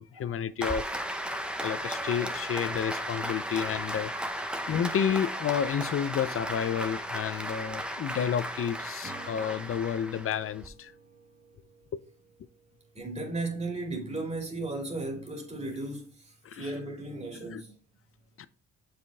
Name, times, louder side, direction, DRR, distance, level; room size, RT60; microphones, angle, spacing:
voice 1, 0.0-10.9 11.9-12.0 16.4-16.7 17.5-17.6 18.4-18.5, left 8 dB, 45° left, 0.6 m, -31 dB
Applause, 0.6-10.7, equal, 5° right, 0.9 m, -35 dB
Acoustic guitar / Strum, 9.0-13.4, right 3 dB, 45° right, 2.2 m, -53 dB
voice 2, 12.9-17.7, right 2 dB, 20° right, 2.4 m, -36 dB
6.9 x 5.1 x 3.4 m
cardioid pair, 90°, 30 cm